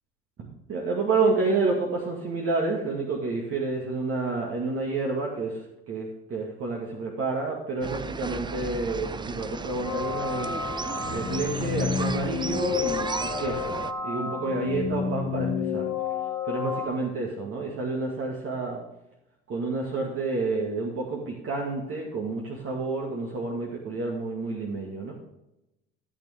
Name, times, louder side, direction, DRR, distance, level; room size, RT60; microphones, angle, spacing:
voice 1, 0.4-5.6 5.9-10.5 11.1-15.8 16.5-18.8 19.5-25.1, right 3 dB, 50° right, -1 dB, 2.0 m, -29 dB
sound 1, 7.8-13.9, right 4 dB, 15° right, 0.5 m, -35 dB
sound 2, 9.8-16.9, left 6 dB, 85° left, 1.8 m, -30 dB
14.5 x 6.6 x 3.6 m, 0.89 s
supercardioid pair, 80°, 29 cm